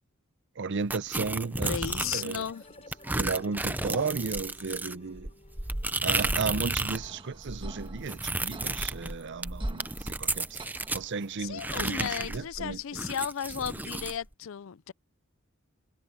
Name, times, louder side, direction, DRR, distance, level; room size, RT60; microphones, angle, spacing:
voice 1, 0.6-1.7 2.0-2.5 3.1-5.3 6.0-10.6 10.9-12.8, right 4 dB, 60° right, 0.6 m, -34 dB
sound 1, 0.9-2.5 2.9-7.1 7.3-11.1 11.6-14.2, right 2 dB, 10° right, 0.6 m, -32 dB
voice 2, 1.6-2.7 11.4-14.9, left 8 dB, 70° left, 0.5 m, -35 dB
sound 2, 1.9-7.3, left 1 dB, 30° left, 5.5 m, -52 dB
sound 3, 6.6-11.6, right 2 dB, 25° right, 1.4 m, -49 dB
head